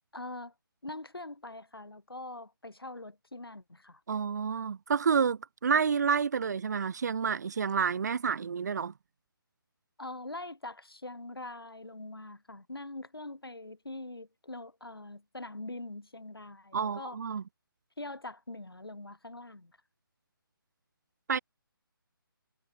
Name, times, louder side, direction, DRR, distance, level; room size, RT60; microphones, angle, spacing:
voice 1, 0.1-0.5 0.8-4.0 10.0-17.2 18.0-19.7, left 2 dB, 80° left, 7.9 m, -43 dB
voice 2, 4.1-8.9 16.7-17.4 21.3-21.4, right 6 dB, 45° right, 0.8 m, -29 dB
figure-of-eight pair, 145°, 12 cm